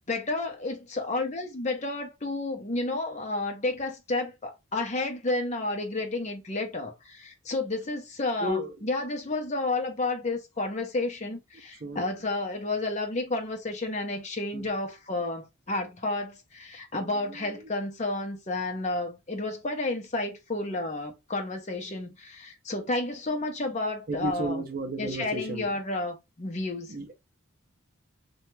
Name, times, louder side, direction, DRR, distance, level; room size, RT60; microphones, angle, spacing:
voice 1, 0.1-24.6 25.0-26.9, left 2 dB, 35° left, 0.6 m, -31 dB
voice 2, 8.4-8.7 11.8-12.0 14.5-14.7 16.9-17.5 24.1-25.7 26.9-27.1, right 1 dB, 40° right, 0.5 m, -33 dB
2.8 x 2.2 x 3.1 m
head